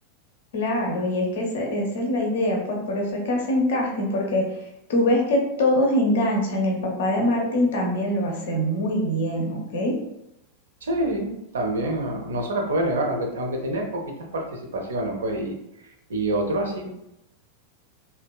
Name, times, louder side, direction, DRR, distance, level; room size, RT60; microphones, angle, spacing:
voice 1, 0.5-4.6 4.9-9.9, left 1 dB, 55° left, 0 dB, 0.5 m, -23 dB
voice 2, 10.8-16.9, right 1 dB, 65° right, 2 dB, 0.5 m, -27 dB
2.7 x 2.1 x 2.2 m, 0.85 s
figure-of-eight pair, 90°, 0 cm